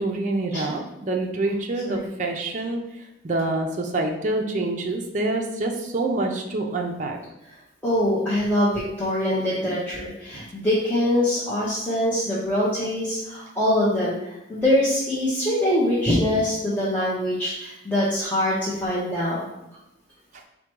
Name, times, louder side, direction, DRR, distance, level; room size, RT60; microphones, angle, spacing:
voice 1, 0.0-2.8 3.2-7.2 9.3-9.7 10.3-10.4, right 2 dB, 40° right, 2 dB, 0.4 m, -26 dB
voice 2, 7.8-14.1 14.5-19.4, left 1 dB, 10° left, -10 dB, 0.8 m, -23 dB
4.7 x 2.2 x 4.5 m, 0.88 s
head